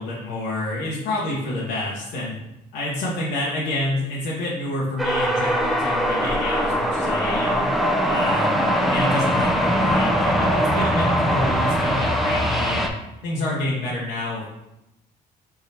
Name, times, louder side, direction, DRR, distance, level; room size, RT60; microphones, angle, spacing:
voice 1, 0.0-2.3 2.7-7.8 8.0-12.9 13.2-14.4, left 2 dB, 85° left, -5 dB, 0.9 m, -28 dB
sound 1, 5.0-12.9, equal, ahead, 0.5 m, -21 dB
4.6 x 3.6 x 2.8 m, 0.89 s
cardioid pair, 110°, 17 cm